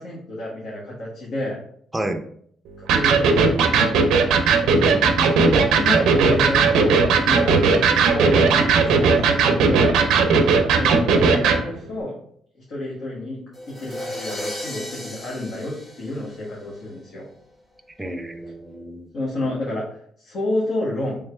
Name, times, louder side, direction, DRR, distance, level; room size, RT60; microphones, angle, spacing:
voice 1, 0.0-1.6 2.9-4.3 5.7-7.5 8.0-9.9 10.7-12.1 12.7-13.4 13.7-17.2 19.1-21.2, left 1 dB, 70° left, -5 dB, 1.2 m, -30 dB
Electric guitar, 2.9-11.6, right 4 dB, 90° right, 0.5 m, -17 dB
voice 2, 4.8-5.5 18.0-19.1, right 1 dB, 10° right, 6 dB, 0.5 m, -30 dB
sound 1, 13.5-16.8, left 1 dB, 30° left, 1.6 m, -34 dB
3.5 x 3.3 x 3.2 m, 0.63 s
cardioid pair, 90°, 0 cm